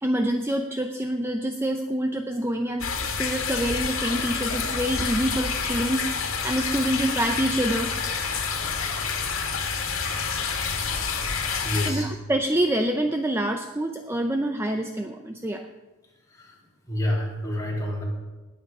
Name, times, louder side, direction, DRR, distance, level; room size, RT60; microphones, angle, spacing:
voice 1, 0.0-7.9 11.9-15.7, right 1 dB, 10° right, 5 dB, 0.5 m, -26 dB
sound 1, 2.8-11.9, left 5 dB, 80° left, 2.1 m, -28 dB
voice 2, 11.6-12.1 16.3-16.6 16.9-18.0, left 1 dB, 15° left, -3 dB, 3.2 m, -28 dB
20.0 x 7.8 x 5.4 m, 1.2 s
head